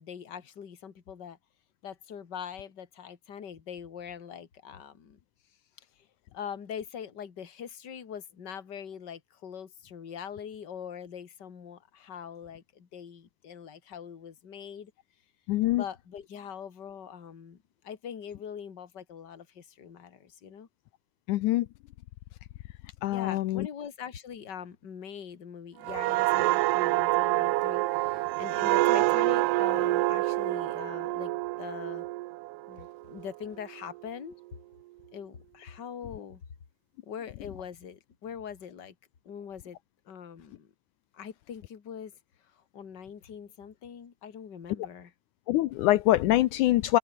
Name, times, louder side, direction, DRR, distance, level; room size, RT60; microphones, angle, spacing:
voice 1, 0.0-1.4 1.8-5.2 5.8-6.1 6.3-14.9 15.7-20.7 23.1-32.1 32.7-34.4 35.1-36.4 37.0-38.9 39.2-39.8 40.1-40.7 41.1-45.1, left 8 dB, 35° left, 2.0 m, -43 dB
voice 2, 15.5-15.8 21.3-21.7 23.0-23.7 45.5-47.0, left 15 dB, 85° left, 1.7 m, -24 dB
sound 1, 25.8-33.3 33.7-34.0, right 20 dB, 90° right, 2.8 m, -27 dB
omnidirectional pair, 4.6 m